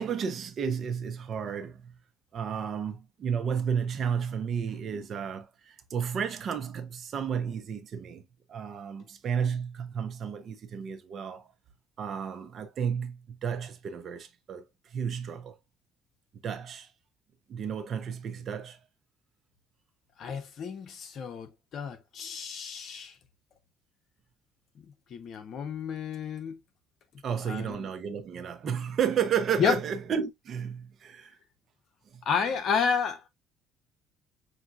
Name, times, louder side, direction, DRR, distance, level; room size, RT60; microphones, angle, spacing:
voice 1, 0.0-1.9 2.3-8.2 8.5-11.5 12.0-14.6 14.9-15.6 16.4-16.9 17.5-18.8 27.2-31.4 32.1-32.2, right 7 dB, 50° right, 0.8 m, -32 dB
voice 2, 20.2-23.1 24.8-26.6 27.5-27.9 29.6-29.8 32.2-33.2, left 6 dB, 55° left, 1.0 m, -31 dB
5.7 x 2.9 x 2.5 m
cardioid pair, 105°, 0 cm